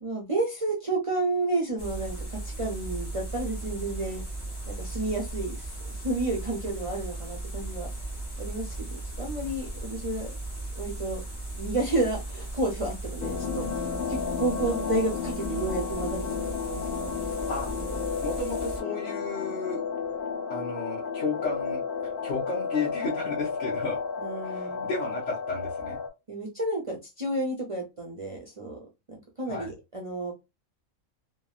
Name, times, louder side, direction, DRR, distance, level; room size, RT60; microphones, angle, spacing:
voice 1, 0.0-4.2 4.7-7.9 8.4-10.3 10.7-11.2 11.6-16.4 16.7-17.3 17.8-18.0 24.2-24.9 26.3-28.8 29.1-30.3, right 2 dB, 40° right, -1 dB, 0.5 m, -31 dB
sound 1, 1.8-18.8, right 2 dB, 25° left, 0.7 m, -37 dB
sound 2, 13.2-26.1, left 6 dB, 85° left, 1.1 m, -32 dB
voice 2, 18.2-19.8 20.5-24.0 24.4-26.0 29.5-29.7, left 3 dB, 65° left, -4 dB, 1.2 m, -33 dB
3.2 x 2.3 x 2.3 m, 0.24 s
omnidirectional pair, 1.4 m